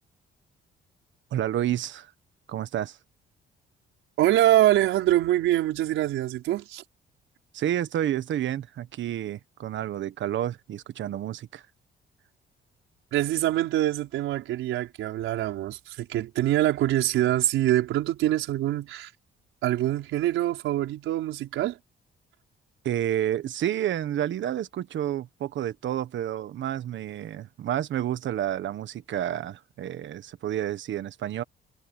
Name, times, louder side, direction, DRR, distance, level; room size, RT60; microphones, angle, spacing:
voice 1, 1.3-2.1 2.5-3.0 7.5-11.6 22.8-31.4, right 11 dB, 70° right, 1.5 m, -30 dB
voice 2, 4.2-6.8 13.1-19.1 19.6-21.8, right 14 dB, 90° right, 4.9 m, -24 dB
cardioid pair, 90°, 20 cm